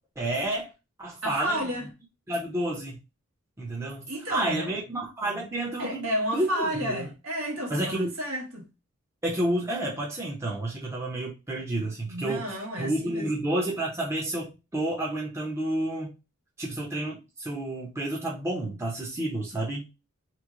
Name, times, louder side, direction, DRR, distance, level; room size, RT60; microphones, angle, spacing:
voice 1, 0.2-0.7 1.0-1.6 2.3-3.0 3.6-7.1 7.7-8.1 9.2-12.4 12.8-16.2 16.6-19.9, right 1 dB, 15° right, 0.6 m, -30 dB
voice 2, 1.2-1.9 4.1-4.7 5.8-8.7 11.8-13.3, equal, 85° right, 1.3 m, -31 dB
3.0 x 2.1 x 3.7 m
head